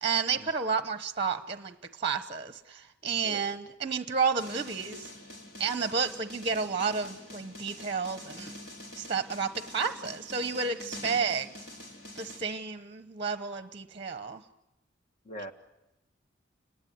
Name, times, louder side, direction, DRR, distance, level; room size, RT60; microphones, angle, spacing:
voice 1, 0.0-5.1 5.6-8.5 9.0-11.5 12.2-14.4, right 5 dB, 30° right, 10 dB, 1.0 m, -31 dB
voice 2, 3.0-3.5 15.2-15.5, right 1 dB, 40° left, 6 dB, 1.9 m, -42 dB
sound 1, 4.4-12.4, left 1 dB, 55° left, 5.2 m, -46 dB
30.0 x 20.5 x 9.5 m, 0.95 s
head